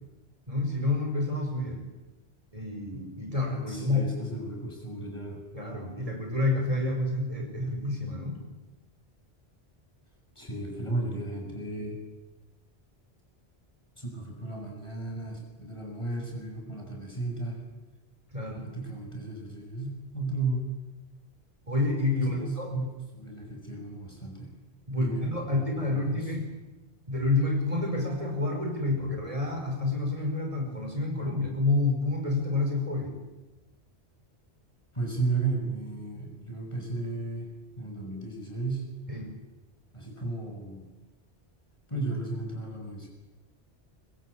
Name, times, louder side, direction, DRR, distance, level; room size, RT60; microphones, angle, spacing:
voice 1, 0.5-1.9 2.5-4.0 5.5-8.4 18.3-18.7 21.7-22.7 24.9-26.5 27.1-33.2 39.1-39.3, left 2 dB, 30° right, 2 dB, 5.4 m, -29 dB
voice 2, 3.7-5.4 10.4-12.0 14.0-17.6 18.6-20.8 22.1-22.9 23.1-24.5 24.9-26.3 34.9-37.5 37.8-38.9 39.9-40.9 41.9-43.1, right 3 dB, 25° left, 1 dB, 7.5 m, -34 dB
25.5 x 23.0 x 8.6 m, 1.1 s
omnidirectional pair, 1.1 m